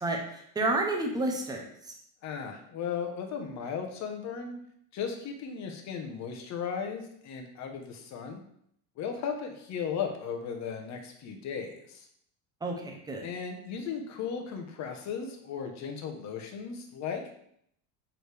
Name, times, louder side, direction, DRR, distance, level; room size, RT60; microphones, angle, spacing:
voice 1, 0.0-1.6 12.6-13.3, right 2 dB, 10° right, 1 dB, 0.7 m, -30 dB
voice 2, 2.2-4.6 4.9-8.4 9.0-12.1 13.2-17.3, left 6 dB, 35° left, 4 dB, 0.9 m, -36 dB
6.2 x 4.9 x 3.4 m, 0.70 s
cardioid pair, 160°, 50 cm